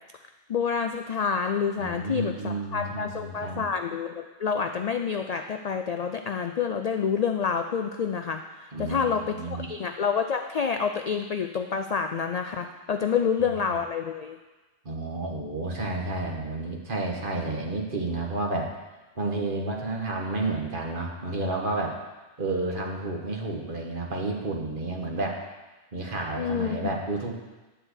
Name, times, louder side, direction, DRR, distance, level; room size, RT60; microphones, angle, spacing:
voice 1, 0.5-14.4 26.4-26.9, left 6 dB, 70° left, 7 dB, 0.3 m, -28 dB
voice 2, 1.8-3.7 8.7-9.7 13.4-13.5 14.8-18.7 19.2-22.0 22.4-25.4 25.9-27.4, right 2 dB, 45° right, 0 dB, 1.5 m, -31 dB
11.0 x 4.5 x 8.0 m, 1.2 s
omnidirectional pair, 1.2 m